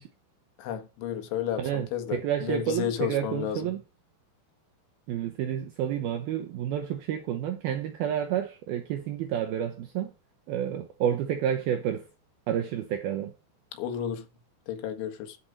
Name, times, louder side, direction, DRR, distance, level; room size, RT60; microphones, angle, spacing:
voice 1, 0.6-3.7 13.7-14.3 14.7-15.4, left 9 dB, 75° left, 4.0 m, -32 dB
voice 2, 1.6-3.8 5.1-10.1 10.5-12.1 12.5-13.3, right 10 dB, 75° right, 2.3 m, -30 dB
13.5 x 5.9 x 5.4 m
omnidirectional pair, 5.6 m